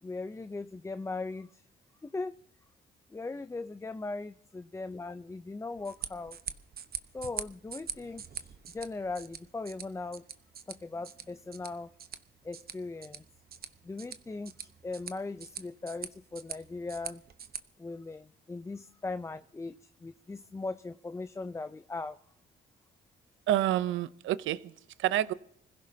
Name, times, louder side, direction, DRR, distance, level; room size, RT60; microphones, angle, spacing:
voice 1, 0.0-1.6 2.0-2.3 3.1-6.4 7.1-10.2 10.7-11.9 12.4-13.2 13.8-17.2 17.8-22.2, left 3 dB, 15° left, 0.5 m, -39 dB
sound 1, 5.7-17.6, right 7 dB, 50° right, 1.0 m, -44 dB
voice 2, 23.5-24.7 25.0-25.3, right 12 dB, 75° right, 0.6 m, -28 dB
26.0 x 16.0 x 2.8 m
cardioid pair, 90°, 20 cm